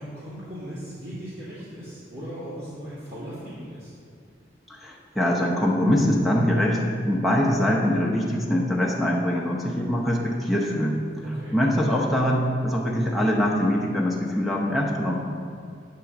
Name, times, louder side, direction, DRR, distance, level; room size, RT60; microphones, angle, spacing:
voice 1, 0.0-3.9 11.2-11.6, equal, 55° right, -12 dB, 2.1 m, -38 dB
voice 2, 4.7-6.8 7.1-15.2, equal, ahead, -3 dB, 0.8 m, -23 dB
8.8 x 3.8 x 6.9 m, 2.2 s
head